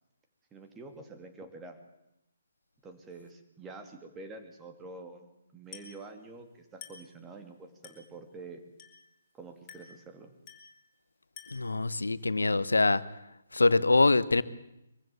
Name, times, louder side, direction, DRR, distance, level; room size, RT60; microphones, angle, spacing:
voice 1, 0.5-1.8 2.8-8.6 9.3-10.3, right 3 dB, 15° right, 5 dB, 2.7 m, -47 dB
Glass, 5.7-6.1 6.8-7.2 7.8-8.1 8.8-9.1 9.7-10.0 10.5-10.8 11.4-11.8, left 7 dB, 25° left, 4.5 m, -50 dB
voice 2, 11.5-13.0 13.5-14.4, left 3 dB, 80° left, 17 dB, 1.0 m, -24 dB
23.5 x 15.0 x 9.2 m, 0.87 s
figure-of-eight pair, 135°, 0 cm